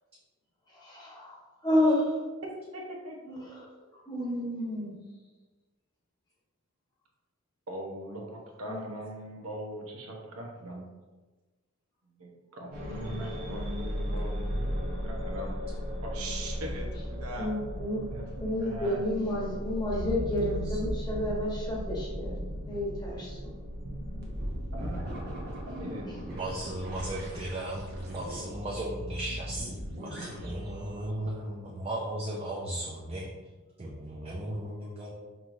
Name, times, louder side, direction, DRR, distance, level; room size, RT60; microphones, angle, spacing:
voice 1, 0.7-2.2 3.2-4.9 8.7-8.9 17.4-18.0 18.4-22.4 22.7-23.5, left 1 dB, 20° left, -5 dB, 1.1 m, -31 dB
voice 2, 2.7-3.2 7.7-10.9 12.2-15.5 16.0-17.5 18.0-18.2 18.6-19.6 24.7-25.0 25.7-26.6, right 1 dB, 85° right, -1 dB, 0.9 m, -41 dB
sound 1, 12.7-31.1, equal, 50° right, 0.9 m, -36 dB
voice 3, 26.3-29.7 30.0-33.3 33.8-35.1, right 1 dB, 25° right, -3 dB, 0.5 m, -36 dB
5.4 x 3.0 x 2.6 m, 1.3 s
head